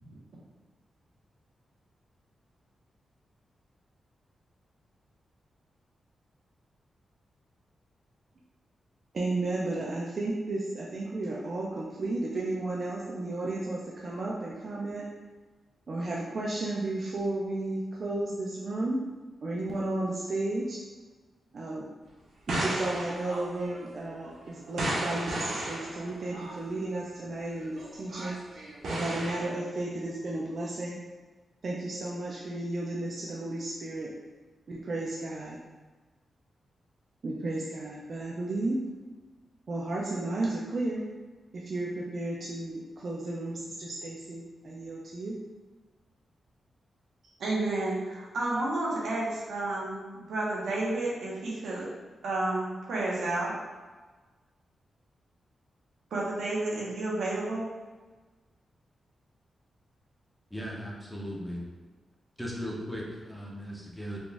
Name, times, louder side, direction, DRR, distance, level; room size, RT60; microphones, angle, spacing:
voice 1, 9.1-15.1 15.9-19.0 19.4-20.8 21.5-21.9 22.5-28.4 28.9-31.0 31.6-34.1 34.7-35.6 37.2-38.8 39.7-41.0 41.5-45.4, right 2 dB, 40° right, -4 dB, 0.4 m, -33 dB
sound 1, 22.5-26.5 27.5-29.5, right 1 dB, 70° right, 0.9 m, -35 dB
voice 2, 47.4-51.9 52.2-53.5 56.1-57.7, right 2 dB, 90° right, -5 dB, 1.0 m, -31 dB
voice 3, 60.5-61.6 62.4-64.2, equal, 5° left, -3 dB, 0.6 m, -37 dB
4.0 x 2.4 x 3.3 m, 1.3 s
wide cardioid pair, 170°, 0 cm